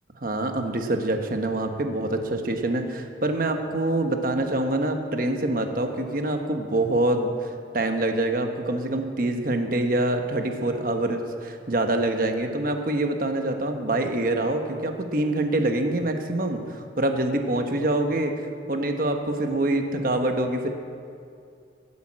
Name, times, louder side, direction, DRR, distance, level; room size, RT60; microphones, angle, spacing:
voice 1, 0.2-7.5 7.7-20.7, right 1 dB, 50° right, 5 dB, 1.1 m, -25 dB
14.0 x 8.5 x 7.4 m, 2.4 s
head